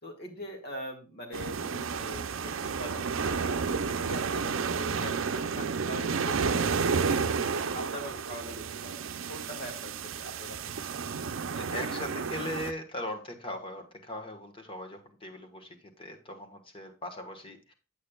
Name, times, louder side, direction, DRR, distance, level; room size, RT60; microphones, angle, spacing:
voice 1, 0.0-3.6 3.9-8.9 9.3-10.7, equal, 55° left, 2 dB, 2.2 m, -43 dB
sound 1, 1.3-12.7, right 5 dB, 75° right, 0.6 m, -31 dB
voice 2, 11.5-17.7, left 1 dB, 25° left, 4 dB, 1.4 m, -39 dB
8.5 x 8.4 x 2.3 m, 0.33 s
head